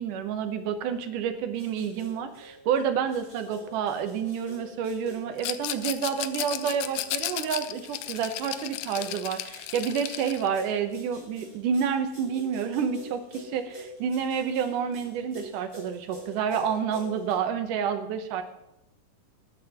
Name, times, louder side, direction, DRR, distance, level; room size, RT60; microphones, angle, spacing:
voice 1, 0.0-18.4, right 7 dB, 85° right, 8 dB, 2.6 m, -29 dB
sound 1, 1.3-17.3, equal, 10° left, 4.2 m, -46 dB
Rattle, 5.4-10.5, left 13 dB, 80° left, 1.7 m, -34 dB
19.0 x 10.0 x 2.9 m, 0.85 s
omnidirectional pair, 3.6 m